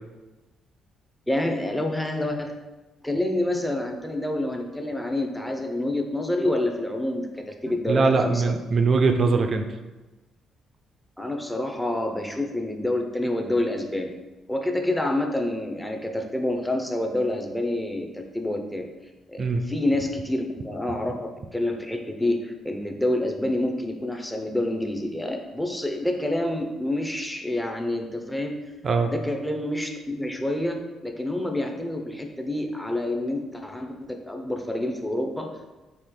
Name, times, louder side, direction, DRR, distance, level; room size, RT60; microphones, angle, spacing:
voice 1, 1.3-2.5 3.0-8.5 11.2-14.1 14.5-18.9 19.3-28.6 29.1-35.5, left 1 dB, 5° left, 3 dB, 0.6 m, -28 dB
voice 2, 7.9-9.7 19.4-19.7 28.8-29.1, right 4 dB, 45° right, 6 dB, 0.4 m, -21 dB
4.4 x 2.8 x 3.7 m, 1.1 s
cardioid pair, 90°, 0 cm